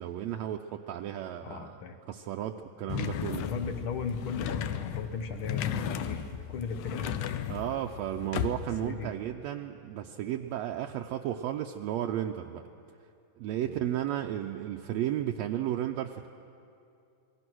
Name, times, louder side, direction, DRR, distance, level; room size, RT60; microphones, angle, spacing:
voice 1, 0.0-1.7 2.1-3.4 7.5-12.6 13.4-16.3, right 11 dB, 75° right, 3 dB, 1.8 m, -33 dB
voice 2, 1.4-2.0 3.3-7.4 8.8-9.1 13.6-13.8, left 5 dB, 60° left, 7 dB, 1.5 m, -37 dB
sound 1, 2.9-8.9, left 9 dB, 85° left, 2.3 m, -35 dB
27.5 x 21.0 x 6.2 m, 2.6 s
omnidirectional pair, 3.3 m